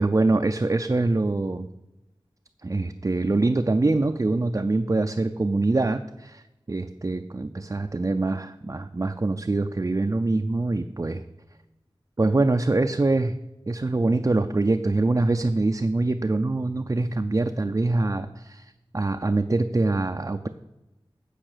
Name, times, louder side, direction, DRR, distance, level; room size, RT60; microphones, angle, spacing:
voice 1, 0.0-1.7 2.6-6.4 6.7-11.2 12.2-13.4 13.7-18.7 18.9-20.5, right 2 dB, 35° right, 6 dB, 0.4 m, -24 dB
8.8 x 4.9 x 6.6 m, 0.98 s
wide cardioid pair, 45°, 10 cm